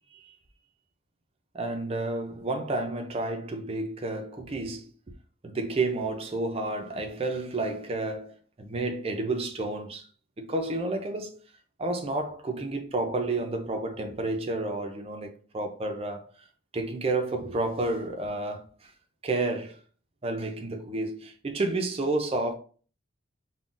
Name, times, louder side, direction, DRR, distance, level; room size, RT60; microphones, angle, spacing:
voice 1, 1.5-4.9 5.4-10.1 10.4-11.4 11.8-16.3 16.7-18.9 19.2-19.8 20.2-22.5, right 2 dB, 30° right, 0.5 m, -30 dB
3.7 x 2.2 x 2.5 m
head